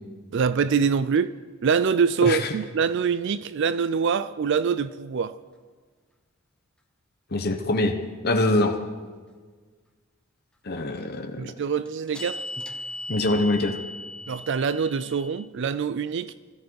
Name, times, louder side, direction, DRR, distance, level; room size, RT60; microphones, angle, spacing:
voice 1, 0.3-1.3 1.6-5.3 11.4-12.4 14.3-16.3, right 6 dB, 55° right, 0.4 m, -24 dB
sound 1, 1.2-1.3 11.5-15.5, left 1 dB, 5° left, 0.7 m, -38 dB
voice 2, 2.2-2.5 7.3-7.9 8.2-8.8 10.6-11.4 13.1-13.8, left 2 dB, 45° left, 1.0 m, -24 dB
21.0 x 13.5 x 4.7 m
head